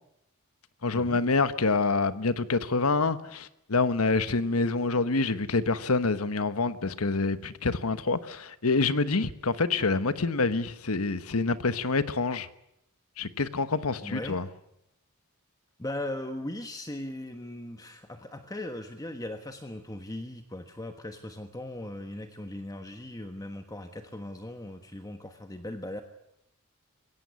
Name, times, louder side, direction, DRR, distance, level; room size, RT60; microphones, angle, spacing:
voice 1, 0.8-12.5 13.2-14.5, left 3 dB, 80° left, 1.2 m, -27 dB
voice 2, 14.0-14.4 15.8-26.0, left 1 dB, 15° left, 1.3 m, -38 dB
22.0 x 17.0 x 9.5 m
head